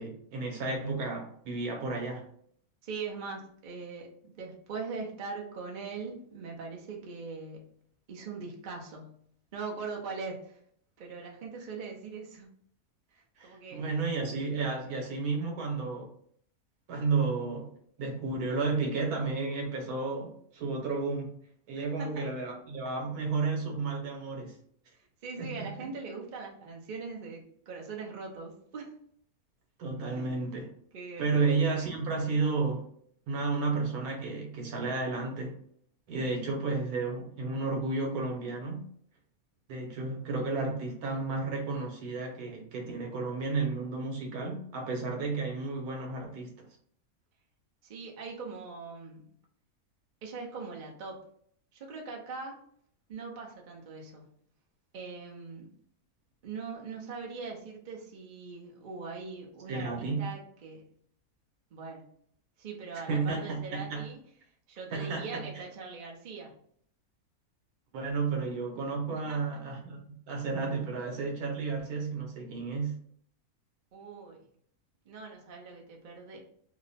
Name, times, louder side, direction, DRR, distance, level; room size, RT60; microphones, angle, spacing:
voice 1, 0.0-2.2 13.4-16.1 16.9-17.7 18.0-21.3 21.7-24.5 25.4-25.7 29.8-30.7 31.2-32.9 33.3-35.6 36.1-38.8 39.7-46.5 59.7-60.3 63.1-64.1 64.9-65.6 67.9-70.0 70.3-72.9, right 4 dB, 90° right, 1 dB, 1.4 m, -32 dB
voice 2, 2.8-7.7 8.1-9.2 9.5-10.6 11.0-12.5 13.1-13.9 21.8-22.3 25.2-28.9 30.1-30.3 30.9-31.6 47.8-49.3 50.2-51.2 51.7-52.6 53.1-54.2 54.9-55.7 56.4-60.9 61.7-62.1 62.6-64.2 64.7-66.5 69.1-69.4 73.9-74.4 75.1-76.4, right 4 dB, 45° right, 0 dB, 0.7 m, -41 dB
2.9 x 2.1 x 4.0 m, 0.62 s
omnidirectional pair, 1.6 m